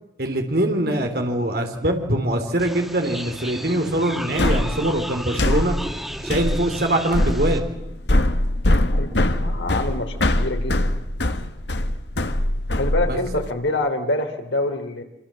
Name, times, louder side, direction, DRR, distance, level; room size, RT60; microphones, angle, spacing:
voice 1, 0.2-5.7 6.2-7.6 13.1-13.2, right 1 dB, 55° right, 4 dB, 3.4 m, -23 dB
sound 1, 2.6-7.6, equal, ahead, 2.3 m, -33 dB
sound 2, 4.4-13.5, left 1 dB, 70° left, 1.4 m, -22 dB
voice 2, 8.9-10.9 12.7-15.0, left 2 dB, 85° left, 5 dB, 3.6 m, -26 dB
25.5 x 24.5 x 7.7 m, 0.92 s
head